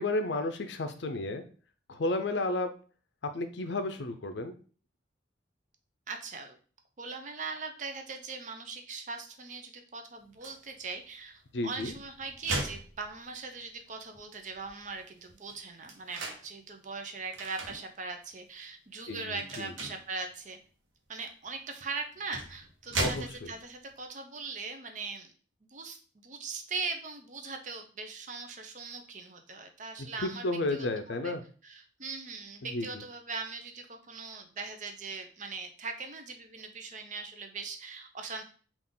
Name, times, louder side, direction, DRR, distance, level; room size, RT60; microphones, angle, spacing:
voice 1, 0.0-1.4 1.9-2.7 3.3-4.5 11.5-11.9 19.1-19.7 23.0-23.5 30.2-31.4 32.6-33.0, left 2 dB, 65° left, 8 dB, 0.5 m, -32 dB
voice 2, 6.1-6.6 7.0-20.6 21.1-25.3 25.7-30.4 30.7-30.9 31.2-31.3 31.6-38.4, right 4 dB, 40° right, 6 dB, 0.5 m, -40 dB
sound 1, 10.4-10.7 11.6-13.6 14.1-14.3 14.5-16.5 17.3-17.8 18.3-18.5 19.4-20.1 21.4-21.5 22.1-23.7, right 2 dB, 90° right, 0.9 m, -37 dB
3.7 x 2.4 x 3.7 m, 0.39 s
head